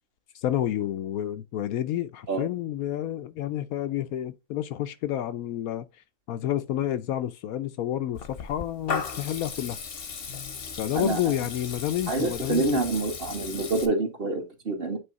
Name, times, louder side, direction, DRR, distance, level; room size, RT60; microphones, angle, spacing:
voice 1, 0.3-5.9 6.3-9.8 10.8-12.8, left 11 dB, 70° left, 1.0 m, -29 dB
Water tap faucet / Liquid, 8.1-13.9, left 5 dB, 45° left, 0.9 m, -36 dB
voice 2, 12.1-15.0, right 3 dB, 35° right, 1.6 m, -27 dB
9.0 x 3.2 x 4.0 m
omnidirectional pair, 1.6 m